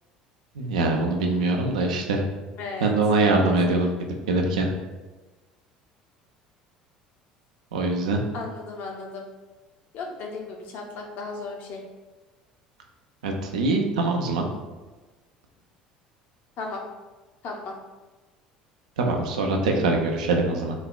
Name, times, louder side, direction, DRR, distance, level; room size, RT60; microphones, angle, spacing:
voice 1, 0.6-2.2 2.8-3.9 4.3-4.7 7.7-8.2 13.2-14.5 19.0-20.7, right 3 dB, 70° right, 2 dB, 0.3 m, -23 dB
voice 2, 2.6-2.9 3.2-3.8 8.3-9.2 9.9-11.8 16.6-16.8 17.4-17.7, left 3 dB, 50° left, 0 dB, 0.5 m, -35 dB
3.1 x 2.0 x 2.3 m, 1.2 s
figure-of-eight pair, 60°, 4 cm